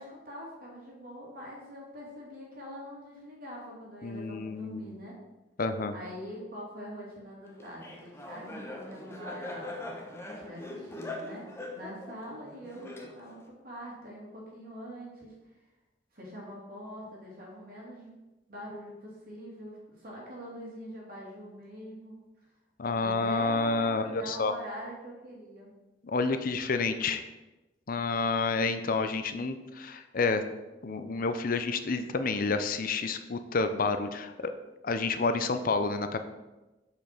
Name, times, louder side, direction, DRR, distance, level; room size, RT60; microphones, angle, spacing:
voice 1, 0.0-5.2 5.9-15.3 16.1-18.2 18.5-22.2 23.0-25.7, equal, 55° right, -4 dB, 3.0 m, -44 dB
voice 2, 4.0-5.0 5.6-5.9 22.8-24.5 26.0-27.2 27.9-30.4 30.8-34.3 34.8-36.2, left 4 dB, 50° left, 9 dB, 0.6 m, -29 dB
Laughter, 7.6-13.5, left 1 dB, 15° left, 1.1 m, -42 dB
6.9 x 5.2 x 5.9 m, 1.1 s
head